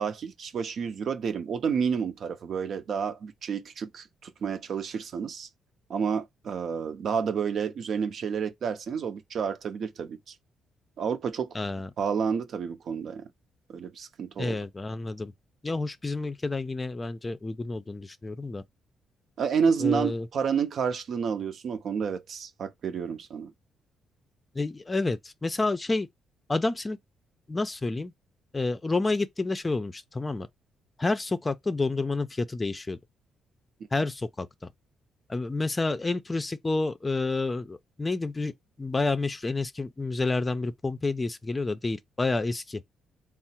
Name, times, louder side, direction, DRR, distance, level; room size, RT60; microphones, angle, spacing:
voice 1, 0.0-5.5 5.9-10.3 11.0-11.6 12.0-13.3 13.7-14.6 19.4-23.5, right 6 dB, 60° right, 0.6 m, -30 dB
voice 2, 11.5-11.9 14.4-15.3 15.6-18.6 19.8-20.3 24.5-26.1 26.5-27.0 27.5-28.1 28.5-30.5 31.0-33.0 33.9-34.5 35.3-38.5 38.8-42.8, left 3 dB, 20° left, 0.5 m, -29 dB
3.6 x 2.0 x 4.3 m
cardioid pair, 90°, 0 cm